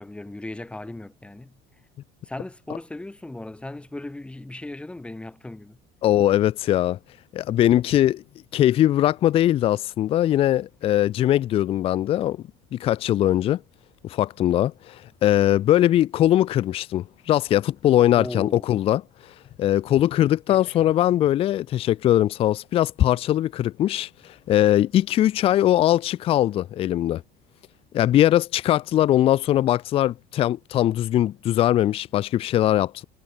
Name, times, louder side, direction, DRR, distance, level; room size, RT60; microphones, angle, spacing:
voice 1, 0.0-1.6 2.2-5.8 18.1-18.7 20.5-20.8, left 2 dB, 5° left, 2.7 m, -37 dB
voice 2, 6.0-7.0 7.3-8.2 8.5-12.4 12.7-13.6 14.0-19.0 19.6-24.1 24.5-27.2 27.9-33.0, left 12 dB, 30° left, 0.4 m, -21 dB
cardioid pair, 160°, 19 cm